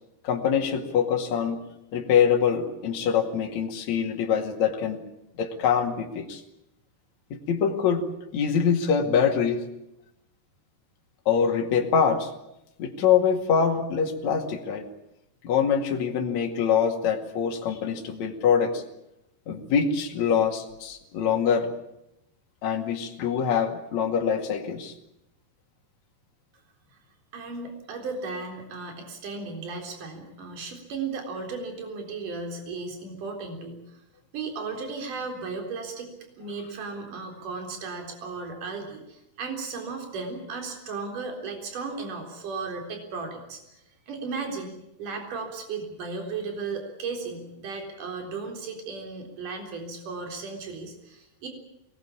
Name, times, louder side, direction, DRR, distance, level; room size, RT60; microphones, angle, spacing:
voice 1, 0.2-1.6 1.9-5.0 5.4-6.4 7.3-8.1 8.3-9.6 11.3-12.3 12.8-14.8 15.4-18.8 19.5-21.7 22.6-24.9, left 7 dB, 50° left, 2 dB, 3.2 m, -24 dB
voice 2, 27.3-33.8 34.3-36.1 36.4-43.8 44.1-51.5, right 4 dB, 50° right, 4 dB, 5.3 m, -35 dB
23.0 x 19.5 x 8.5 m, 0.86 s
omnidirectional pair, 4.8 m